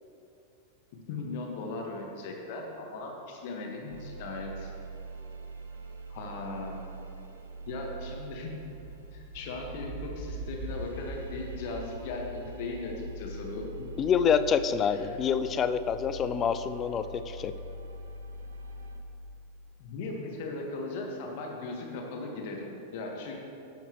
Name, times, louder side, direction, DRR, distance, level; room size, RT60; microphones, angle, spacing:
voice 1, 0.9-4.7 6.1-6.8 7.7-8.5 9.1-13.7 14.8-15.2 19.8-23.4, left 3 dB, 50° left, 1 dB, 1.6 m, -38 dB
sound 1, 3.9-19.0, right 1 dB, 70° right, 0.8 m, -42 dB
voice 2, 14.0-17.5, left 7 dB, 25° left, 12 dB, 0.4 m, -27 dB
11.5 x 9.1 x 3.1 m, 2.7 s
figure-of-eight pair, 90°, 0 cm